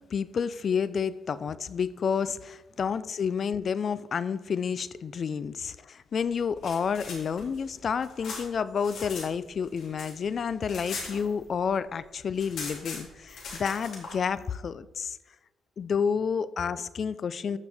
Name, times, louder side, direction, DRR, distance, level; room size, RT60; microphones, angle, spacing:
voice 1, 0.1-15.2 15.8-17.6, left 6 dB, 50° left, 16 dB, 0.4 m, -30 dB
sound 1, 6.4-9.3 9.6-11.7 12.0-12.1 12.3-14.1, left 4 dB, 70° left, 2.5 m, -40 dB
14.0 x 5.0 x 3.5 m, 1.1 s
cardioid pair, 90°, 0 cm